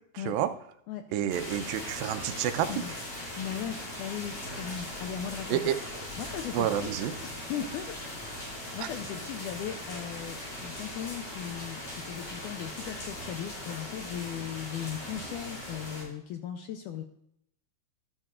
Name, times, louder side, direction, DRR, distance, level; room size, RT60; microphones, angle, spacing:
voice 1, 0.1-0.5 1.1-2.8 5.5-5.8 6.5-7.1 8.8-8.9, right 11 dB, 85° right, 9 dB, 2.4 m, -29 dB
sound 1, 1.3-16.0, left 1 dB, 40° left, 5.6 m, -40 dB
voice 2, 3.4-5.6 6.2-6.9 7.2-17.0, left 9 dB, 80° left, 6 dB, 1.9 m, -38 dB
13.0 x 11.5 x 2.4 m, 0.73 s
omnidirectional pair, 4.1 m